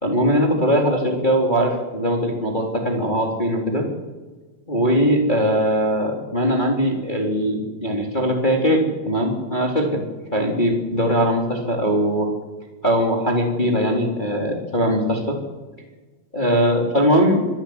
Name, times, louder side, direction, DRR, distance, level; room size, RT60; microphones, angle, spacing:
voice 1, 0.0-3.9 4.7-10.0 10.3-12.3 12.8-15.4 16.3-17.5, equal, 10° left, 0 dB, 3.3 m, -20 dB
25.5 x 15.0 x 9.8 m, 1.3 s
omnidirectional pair, 5.3 m